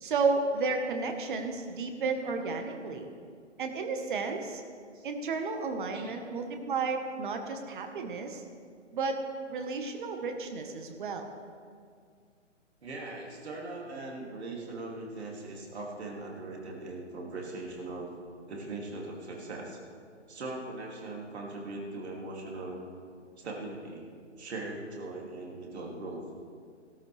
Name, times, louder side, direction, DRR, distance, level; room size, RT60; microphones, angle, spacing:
voice 1, 0.0-3.1 3.6-4.6 5.0-8.4 8.9-9.2 9.5-11.3, right 4 dB, 40° right, 5 dB, 1.4 m, -32 dB
voice 2, 12.8-18.1 18.5-19.8 20.3-22.8 23.4-24.1 24.4-26.2, right 2 dB, 60° right, -1 dB, 2.8 m, -40 dB
16.0 x 13.0 x 3.4 m, 2.1 s
figure-of-eight pair, 145°, 37 cm